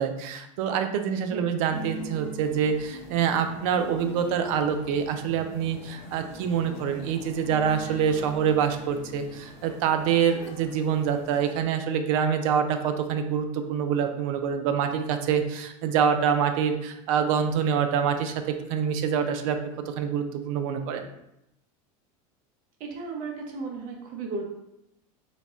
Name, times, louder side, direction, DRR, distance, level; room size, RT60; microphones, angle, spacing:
voice 1, 0.0-18.4 18.7-19.6 19.9-21.1, right 7 dB, 75° right, 7 dB, 0.5 m, -26 dB
sound 1, 1.7-11.6, equal, 70° left, 1.1 m, -43 dB
voice 2, 22.8-24.4, right 4 dB, 50° right, 1 dB, 0.9 m, -34 dB
4.0 x 2.3 x 3.6 m, 0.83 s
supercardioid pair, 110°, 18 cm